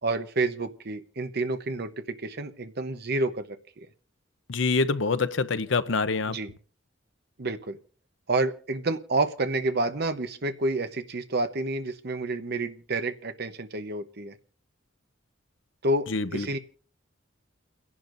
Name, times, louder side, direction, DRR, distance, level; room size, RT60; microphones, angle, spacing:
voice 1, 0.0-3.6 6.3-6.5 7.4-7.8 8.3-14.3 15.8-16.6, right 2 dB, 55° right, 1.0 m, -29 dB
voice 2, 4.5-6.4 16.1-16.5, left 4 dB, 70° left, 0.7 m, -25 dB
29.5 x 11.0 x 2.6 m
head